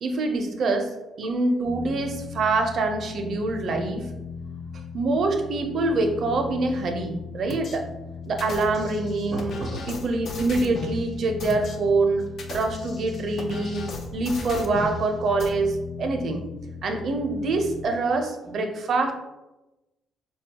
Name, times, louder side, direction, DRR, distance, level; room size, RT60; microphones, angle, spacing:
voice 1, 0.0-0.9 1.2-4.1 4.9-7.9 8.3-13.9 14.1-16.4 16.8-19.1, right 3 dB, 60° right, 5 dB, 0.5 m, -25 dB
sound 1, 1.6-17.9, left 5 dB, 20° left, 0.7 m, -38 dB
sound 2, 7.5-7.8 8.4-11.0 11.4-11.8 12.3-15.0 15.4-15.5, left 3 dB, 60° left, 0.5 m, -37 dB
4.0 x 2.2 x 2.8 m, 1.0 s
cardioid pair, 90°, 0 cm